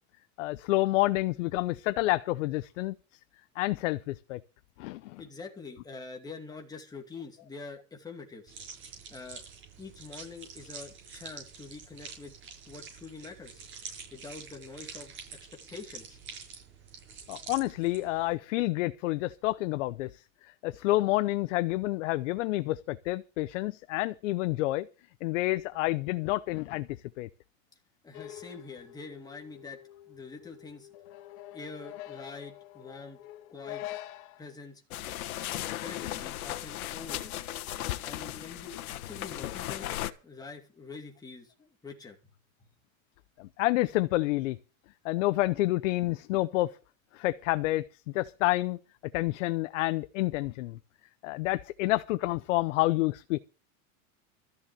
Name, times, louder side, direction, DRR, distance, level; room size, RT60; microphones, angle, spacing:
voice 1, 0.4-2.9 3.6-4.4 4.8-5.2 17.3-20.2 20.6-24.9 25.2-26.9 27.2-27.3 43.4-44.6 45.0-46.8 47.1-48.8 49.1-50.8 51.2-53.4, left 18 dB, 60° left, 0.8 m, -29 dB
voice 2, 5.2-8.5 9.1-9.4 9.8-12.4 12.7-13.6 14.1-15.1 15.5-16.2 28.0-29.8 30.1-30.9 31.5-33.2 33.5-33.8 34.4-34.8 35.5-37.3 38.0-39.9 40.2-42.3 42.6-42.7, left 4 dB, 10° left, 2.5 m, -45 dB
sound 1, 8.5-18.3, right 5 dB, 30° right, 6.5 m, -47 dB
sound 2, 28.1-34.5, left 14 dB, 40° left, 1.1 m, -45 dB
sound 3, 34.9-40.1, left 14 dB, 90° left, 1.4 m, -37 dB
13.5 x 7.0 x 9.0 m
supercardioid pair, 160°, 42 cm